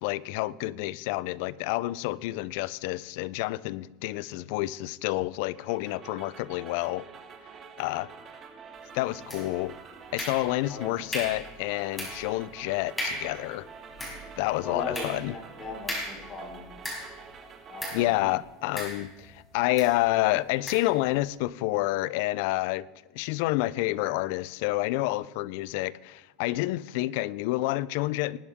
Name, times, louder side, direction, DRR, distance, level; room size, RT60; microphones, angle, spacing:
voice 1, 0.0-7.1 7.8-8.1 8.9-9.8 10.1-13.7 14.4-15.4 17.9-22.9 23.1-28.4, left 18 dB, 65° left, 0.5 m, -29 dB
sound 1, 5.5-18.4, right 6 dB, 35° right, 1.7 m, -48 dB
sound 2, 9.3-9.7 10.2-10.7 11.1-11.5 12.0-12.3 12.6-12.7 13.0-13.4 13.8-17.3 17.8-18.1 18.8-19.3 19.8-20.0 20.7-20.9, left 1 dB, 10° left, 5.0 m, -36 dB
voice 2, 14.6-16.6 17.7-18.2, left 2 dB, 25° left, 4.7 m, -38 dB
20.0 x 9.9 x 3.6 m
supercardioid pair, 120°, 0 cm